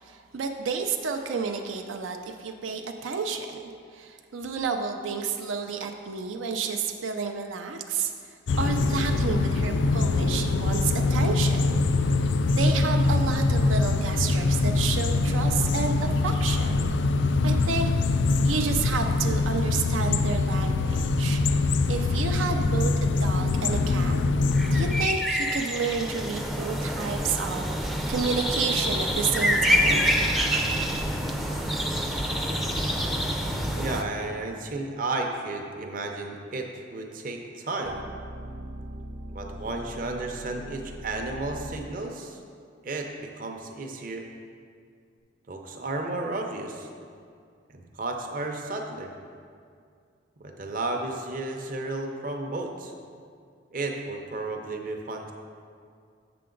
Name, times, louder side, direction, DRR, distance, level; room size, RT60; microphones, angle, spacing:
voice 1, 0.0-3.6 3.9-8.1 8.6-11.8 12.5-15.9 16.2-16.9 17.4-17.9 18.4-24.2 24.6-27.7 28.1-30.0, right 5 dB, 90° right, 4 dB, 0.5 m, -30 dB
sound 1, 8.5-25.1, left 3 dB, 70° left, 0.3 m, -24 dB
sound 2, 24.5-34.0, equal, ahead, 0.4 m, -27 dB
sound 3, 29.8-34.3 37.8-42.0, right 1 dB, 70° right, 0.8 m, -39 dB
voice 2, 33.7-38.0 39.3-42.4 42.8-44.2 45.5-46.9 47.7-49.1 50.4-52.9 53.7-55.3, right 2 dB, 45° right, 2 dB, 0.6 m, -33 dB
7.5 x 6.8 x 3.8 m, 2.2 s
head